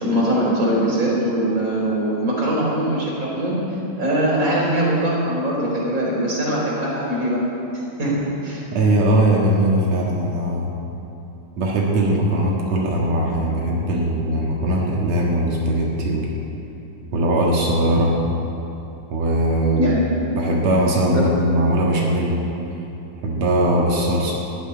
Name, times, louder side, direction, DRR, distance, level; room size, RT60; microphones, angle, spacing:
voice 1, 0.0-3.6 4.0-7.4 8.0-8.6 19.8-20.0 21.1-21.2, right 1 dB, 20° right, -4 dB, 3.7 m, -21 dB
voice 2, 8.7-10.7 11.6-16.3 17.1-18.1 19.1-19.9 20.3-22.4 23.2-24.3, right 1 dB, 90° right, -2 dB, 1.5 m, -20 dB
15.0 x 9.1 x 9.9 m, 2.9 s
omnidirectional pair, 5.8 m